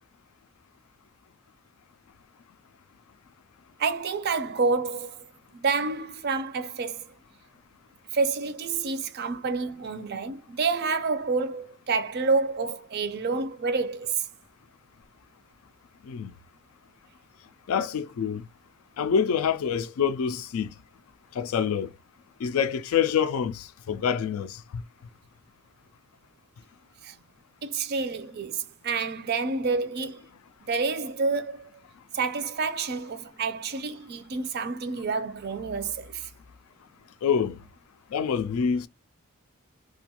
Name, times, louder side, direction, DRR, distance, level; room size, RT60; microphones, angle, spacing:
voice 1, 3.8-5.2 5.5-7.0 8.1-14.3 27.0-27.1 27.6-30.2 30.6-31.6 32.1-36.3, right 4 dB, 45° right, 0.4 m, -28 dB
voice 2, 17.7-18.4 19.0-20.7 21.3-21.9 22.4-24.8 37.2-37.6 38.1-38.9, left 7 dB, 75° left, 0.3 m, -26 dB
2.5 x 2.3 x 2.8 m
head